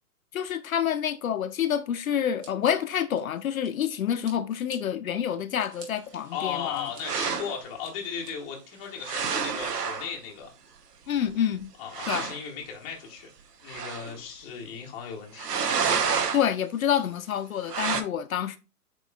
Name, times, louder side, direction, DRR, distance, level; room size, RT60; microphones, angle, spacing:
voice 1, 0.3-6.9 11.1-11.7 12.1-12.3 16.3-18.6, left 9 dB, 60° left, 0.5 m, -28 dB
Scissors, 2.4-3.9 4.2-4.8 5.3-5.9 6.4-7.0 7.5-8.3 8.8-9.3, right 4 dB, 55° right, 2.0 m, -51 dB
voice 2, 6.3-10.5 11.8-13.3 13.6-15.5, left 7 dB, 10° left, 0.6 m, -36 dB
sound 1, 7.0-7.6 9.0-10.1 11.3-11.4 11.6-11.7 11.9-12.4 13.7-14.2 15.4-16.4 17.7-18.0, right 6 dB, 80° right, 0.8 m, -28 dB
8.2 x 2.9 x 2.2 m
figure-of-eight pair, 130°, 47 cm